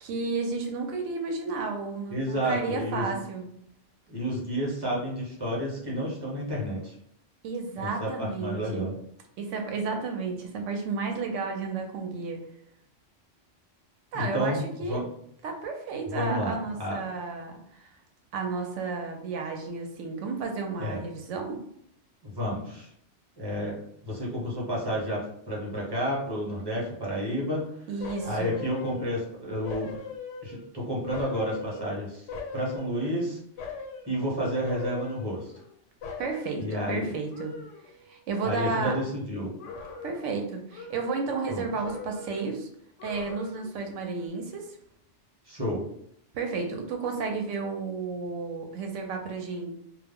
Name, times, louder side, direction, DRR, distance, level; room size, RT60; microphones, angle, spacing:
voice 1, 0.0-3.5 7.4-8.9 9.4-12.5 14.1-15.0 15.4-17.9 18.3-21.6 27.9-28.6 36.2-37.6 38.1-39.0 40.0-42.7 43.0-44.8 46.3-49.7, right 4 dB, 90° right, 4 dB, 0.9 m, -32 dB
voice 2, 2.1-3.1 4.1-6.9 7.8-9.0 14.1-15.1 16.1-17.0 20.8-21.0 22.2-22.9 23.4-27.8 28.2-29.9 30.4-32.3 32.5-33.4 34.1-35.5 36.6-37.1 38.4-39.6 41.5-41.7 45.5-45.9, equal, 25° right, -4 dB, 0.7 m, -31 dB
sound 1, 28.0-29.3 29.6-30.7 31.1-33.2 33.6-34.1 34.6-35.7 36.0-38.2 38.4-39.1 39.6-40.4 40.7-41.6 41.8-42.5 43.0-43.8 44.2-44.3, left 4 dB, 90° left, 0.9 m, -41 dB
2.2 x 2.0 x 3.4 m, 0.71 s
omnidirectional pair, 1.2 m